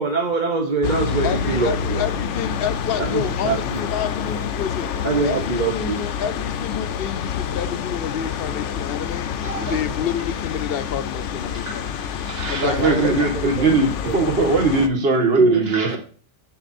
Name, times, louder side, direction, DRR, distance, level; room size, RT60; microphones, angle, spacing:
voice 1, 0.0-2.0 3.0-3.8 5.0-6.0 12.8-13.7 14.1-14.2 15.3-15.6, right 3 dB, 45° right, 1.0 m, -23 dB
sound 1, 0.8-14.9, left 7 dB, 90° left, 1.0 m, -27 dB
voice 2, 1.2-4.9 5.2-9.3 9.6-11.9 12.5-13.3, left 8 dB, 60° left, 0.7 m, -29 dB
voice 3, 9.4-9.8 11.5-16.0, right 3 dB, 60° right, 1.8 m, -21 dB
7.7 x 6.6 x 4.2 m
omnidirectional pair, 1.2 m